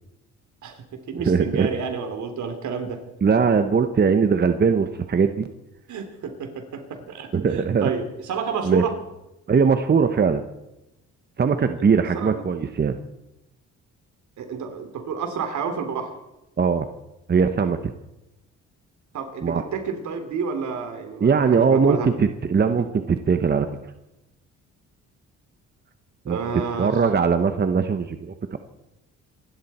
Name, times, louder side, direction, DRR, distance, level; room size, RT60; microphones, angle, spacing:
voice 1, 0.6-3.0 5.9-8.9 12.1-12.3 14.4-16.1 19.1-22.1 26.3-27.0, right 6 dB, 70° right, 6 dB, 3.3 m, -30 dB
voice 2, 1.2-1.7 3.2-5.4 7.3-7.9 8.6-8.8 9.5-10.4 11.4-13.0 16.6-16.9 17.3-17.9 19.4-19.6 21.2-23.7 26.3-26.4 26.8-28.6, right 5 dB, 35° right, 8 dB, 1.0 m, -20 dB
26.5 x 12.5 x 4.4 m, 0.93 s
cardioid pair, 90°, 30 cm